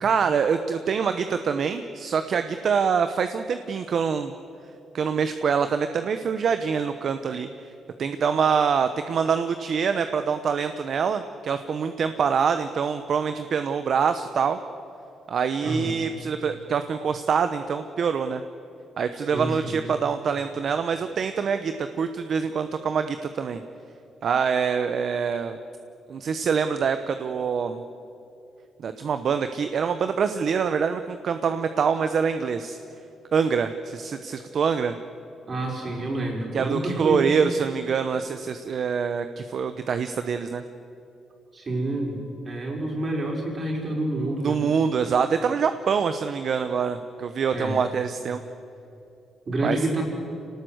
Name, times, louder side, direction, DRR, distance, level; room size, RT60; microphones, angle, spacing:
voice 1, 0.0-4.3 4.9-7.5 8.0-14.6 15.3-18.4 19.0-23.6 24.2-25.6 26.1-27.8 28.8-32.8 33.3-34.9 36.5-40.6 44.4-48.4 49.6-49.8, right 6 dB, 55° right, 9 dB, 0.9 m, -25 dB
voice 2, 15.6-15.9 19.3-19.8 35.5-37.3 41.5-44.6 47.5-47.8 49.5-50.0, right 1 dB, 35° right, 0 dB, 5.4 m, -28 dB
26.5 x 18.5 x 8.0 m, 2.8 s
cardioid pair, 120°, 0 cm